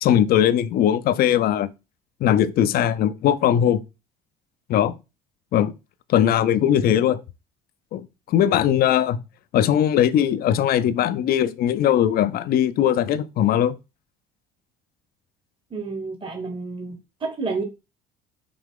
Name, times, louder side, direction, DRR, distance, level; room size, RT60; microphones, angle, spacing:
voice 1, 0.0-1.7 2.2-3.8 4.7-5.0 5.5-5.7 6.1-7.2 7.9-9.2 9.5-13.7, left 10 dB, 55° left, 0.5 m, -20 dB
voice 2, 15.7-17.6, right 4 dB, 25° right, 1.0 m, -30 dB
5.0 x 2.8 x 3.7 m
supercardioid pair, 75°, 19 cm